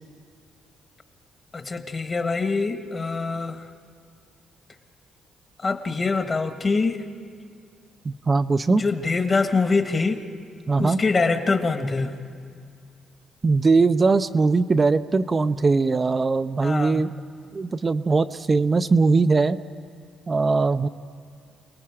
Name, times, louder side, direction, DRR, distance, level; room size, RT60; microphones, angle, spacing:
voice 1, 1.5-3.6 5.6-7.0 8.7-10.2 10.8-12.2 16.6-17.0, left 4 dB, 35° left, 7 dB, 1.5 m, -24 dB
voice 2, 8.0-8.8 10.7-11.0 13.4-17.1 17.5-19.6 20.3-20.9, right 4 dB, 30° right, 10 dB, 0.5 m, -20 dB
28.5 x 19.0 x 4.9 m, 2.3 s
cardioid pair, 90°, 0 cm